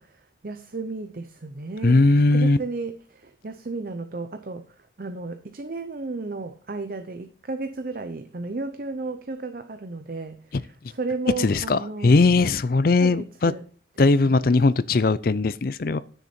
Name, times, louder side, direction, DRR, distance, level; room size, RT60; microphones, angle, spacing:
voice 1, 0.0-12.2 13.0-13.7 14.0-14.1 14.4-14.6, right 3 dB, 50° right, 0.6 m, -34 dB
voice 2, 1.8-2.6 11.4-13.5 14.0-16.0, left 3 dB, 55° left, 0.5 m, -19 dB
10.5 x 6.6 x 4.3 m
head